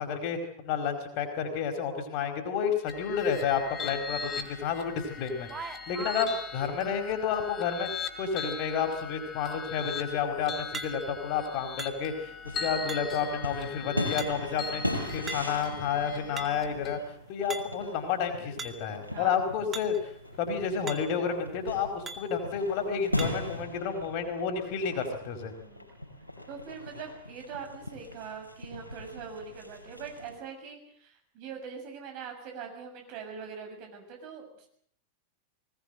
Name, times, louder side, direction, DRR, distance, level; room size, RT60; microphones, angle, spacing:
voice 1, 0.0-7.9 8.2-12.1 12.6-14.8 15.1-17.0 17.3-20.1 20.4-25.5, left 6 dB, 45° left, 6 dB, 4.7 m, -30 dB
sound 1, 2.9-17.0, left 6 dB, 25° left, 4.9 m, -40 dB
sound 2, 4.9-5.0 5.4-6.3 10.7-11.3 11.8-12.3 12.9-13.3 14.2-14.6 15.3-15.7 16.1-16.7 17.5-17.9 18.6-18.9 19.7-20.0 20.3-20.4 20.9-21.3 22.1-22.4 23.2-23.5, right 4 dB, 20° right, 2.4 m, -41 dB
sound 3, 12.4-30.4, left 1 dB, 90° left, 5.5 m, -39 dB
voice 2, 19.1-19.5 25.6-25.9 26.5-34.7, right 6 dB, 45° right, 3 dB, 6.9 m, -42 dB
20.5 x 20.0 x 7.9 m, 0.65 s
figure-of-eight pair, 90°, 0 cm